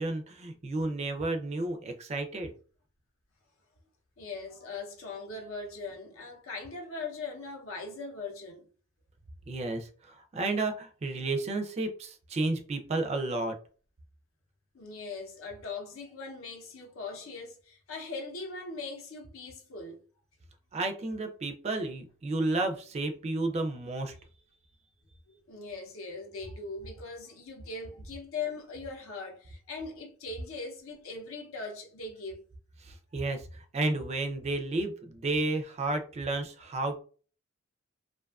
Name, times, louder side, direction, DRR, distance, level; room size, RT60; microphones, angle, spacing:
voice 1, 0.0-2.5 9.5-13.5 20.7-24.2 32.8-37.0, right 2 dB, 30° right, 0.3 m, -32 dB
voice 2, 4.2-8.6 14.7-20.0 25.3-32.5, left 4 dB, 70° left, 0.6 m, -40 dB
2.5 x 2.3 x 2.3 m
head